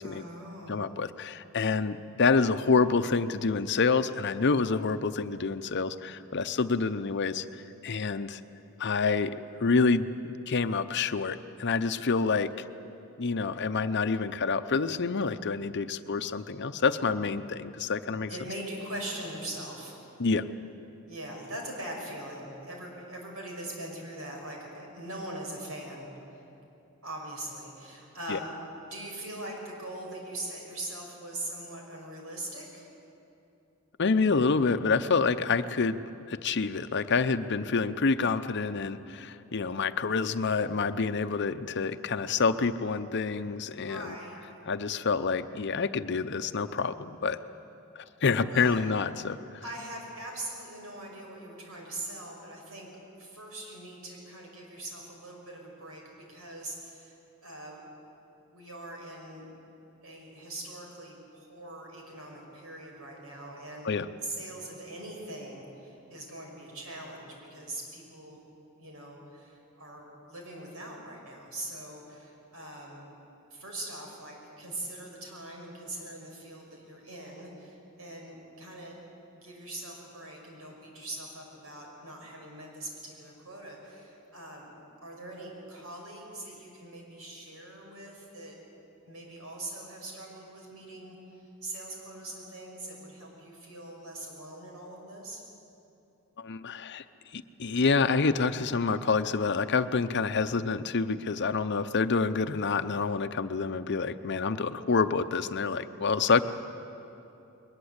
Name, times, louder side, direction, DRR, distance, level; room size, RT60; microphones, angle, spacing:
voice 1, 0.0-0.8 18.3-19.9 21.1-26.4 27.0-28.5 28.9-32.9 43.7-44.5 48.4-48.8 49.6-52.9 53.2-58.0 58.5-59.5 60.0-68.4 68.8-73.0 73.5-79.0 79.3-84.7 85.0-88.6 89.1-95.4, right 1 dB, 90° right, 0 dB, 5.8 m, -42 dB
voice 2, 0.7-8.4 8.8-12.5 13.2-18.3 20.2-20.4 28.3-28.4 34.0-44.1 44.7-47.4 48.0-49.4 63.8-64.1 96.4-97.0 97.3-106.4, left 4 dB, 55° left, 11 dB, 0.7 m, -27 dB
21.5 x 20.0 x 8.1 m, 2.9 s
head